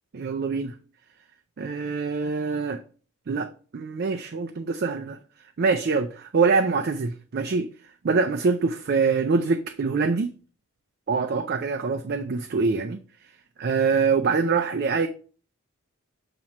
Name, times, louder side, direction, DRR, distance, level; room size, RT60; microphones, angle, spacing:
voice 1, 0.1-0.7 1.6-2.8 3.3-5.2 5.6-7.7 8.0-10.3 11.1-13.0 13.6-15.1, right 4 dB, 45° right, 0.4 m, -24 dB
7.2 x 3.0 x 5.2 m
head